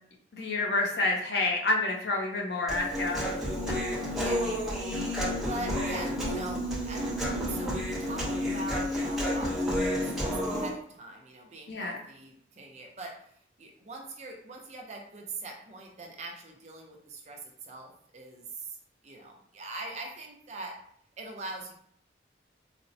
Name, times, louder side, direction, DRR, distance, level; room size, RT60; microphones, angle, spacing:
voice 1, 0.3-3.3 3.7-3.8 11.7-12.0, left 2 dB, 60° left, 0 dB, 0.6 m, -29 dB
Human voice, 2.7-10.7, equal, ahead, 0.7 m, -30 dB
voice 2, 4.1-4.5 5.5-18.8 19.0-20.8 21.2-21.7, right 2 dB, 35° right, 1 dB, 0.5 m, -42 dB
4.2 x 2.0 x 2.6 m, 0.64 s
head